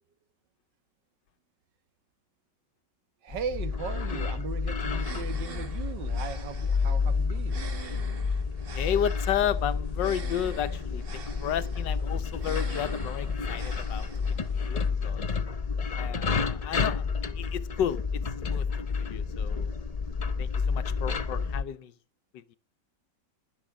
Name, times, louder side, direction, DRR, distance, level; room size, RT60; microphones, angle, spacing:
voice 1, 3.2-7.7, right 6 dB, 80° right, 1.9 m, -38 dB
sound 1, 3.3-21.6, left 5 dB, 45° left, 0.4 m, -30 dB
sound 2, 4.9-14.9, right 5 dB, 35° right, 1.3 m, -46 dB
voice 2, 8.7-14.1 14.5-15.3 16.0-18.7 19.0-19.7 20.4-21.9 22.3-22.6, left 9 dB, 90° left, 1.6 m, -32 dB
21.0 x 7.1 x 4.9 m
omnidirectional pair, 1.9 m